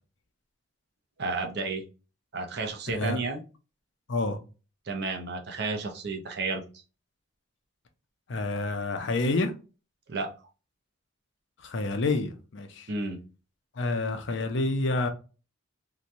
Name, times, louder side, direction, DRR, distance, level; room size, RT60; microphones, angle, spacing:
voice 1, 1.2-1.8 2.3-3.4 4.9-6.6 10.1-10.3 12.9-13.2, right 3 dB, 55° right, 0.5 m, -31 dB
voice 2, 2.9-3.2 4.1-4.4 8.3-9.5 11.6-12.9 13.8-15.1, left 2 dB, 60° left, 0.5 m, -28 dB
2.8 x 2.2 x 2.5 m
head